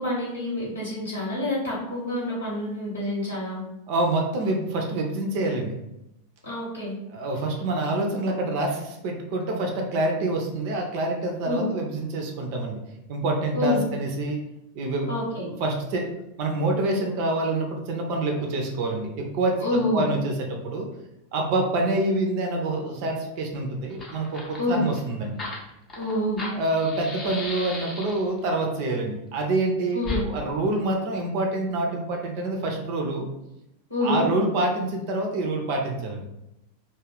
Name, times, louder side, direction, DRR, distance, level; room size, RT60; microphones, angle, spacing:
voice 1, 0.0-3.6 6.4-6.9 11.4-11.7 13.5-13.8 15.1-15.5 19.6-20.0 24.6-24.8 26.0-26.4 29.9-30.2 33.9-34.2, left 1 dB, 80° left, -6 dB, 1.1 m, -27 dB
voice 2, 3.9-5.8 7.1-12.8 13.1-14.4 14.7-15.1 15.4-16.1 16.4-20.9 21.3-25.4 26.6-33.3 34.0-36.3, right 2 dB, 45° right, 2 dB, 0.5 m, -26 dB
Fire, 23.5-23.6 23.8-28.4 30.0-30.2, left 3 dB, 25° left, 0.6 m, -35 dB
2.4 x 2.2 x 3.3 m, 0.88 s
figure-of-eight pair, 90°, 0 cm